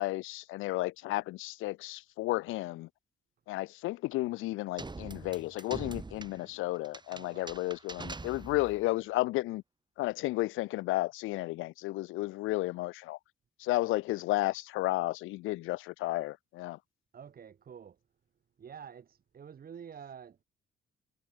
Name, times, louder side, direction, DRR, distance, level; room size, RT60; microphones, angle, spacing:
voice 1, 0.0-2.9 3.5-9.6 10.0-13.2 13.6-16.8, left 19 dB, 90° left, 0.5 m, -33 dB
sound 1, 4.8-8.9, right 3 dB, 20° right, 4.9 m, -44 dB
voice 2, 7.1-7.6 17.1-18.0 18.6-20.4, right 7 dB, 50° right, 2.5 m, -48 dB
cardioid pair, 90°, 20 cm